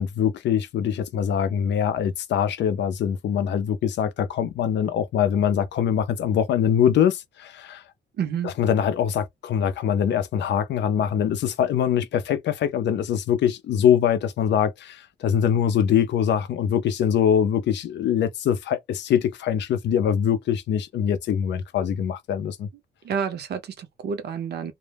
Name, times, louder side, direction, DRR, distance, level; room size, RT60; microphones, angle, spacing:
voice 1, 0.0-7.8 8.6-22.7, left 9 dB, 65° left, 0.4 m, -23 dB
voice 2, 8.2-8.5 23.0-24.7, right 7 dB, 55° right, 0.6 m, -29 dB
2.1 x 2.0 x 3.3 m
cardioid pair, 90°, 20 cm